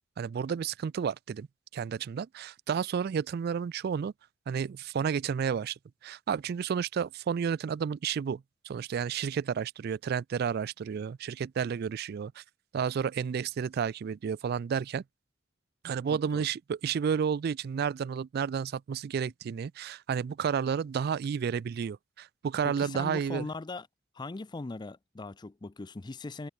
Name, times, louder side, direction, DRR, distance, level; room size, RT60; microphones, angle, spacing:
voice 1, 0.2-1.5 1.7-4.1 4.5-12.4 12.7-15.0 15.8-23.5, right 7 dB, 55° right, 0.3 m, -31 dB
voice 2, 22.6-23.9 24.1-26.5, left 3 dB, 20° left, 0.4 m, -39 dB
head